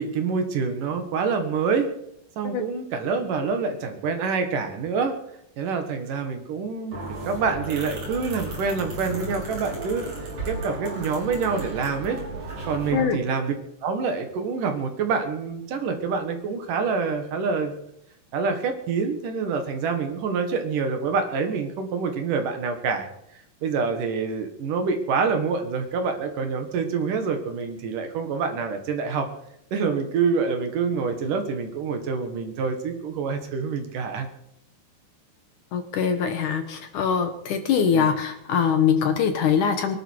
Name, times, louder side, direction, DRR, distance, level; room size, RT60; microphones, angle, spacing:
voice 1, 0.0-1.9 2.4-5.2 5.6-6.9 7.3-12.2 12.6-13.5 13.8-17.7 18.3-23.1 23.6-29.3 29.7-34.3 37.9-38.1, right 5 dB, 65° right, 6 dB, 2.9 m, -26 dB
sound 1, 6.9-13.0, right 2 dB, 45° right, 6.6 m, -34 dB
voice 2, 35.7-40.0, left 7 dB, 65° left, 7 dB, 2.3 m, -23 dB
23.0 x 11.5 x 4.6 m, 0.77 s
omnidirectional pair, 4.4 m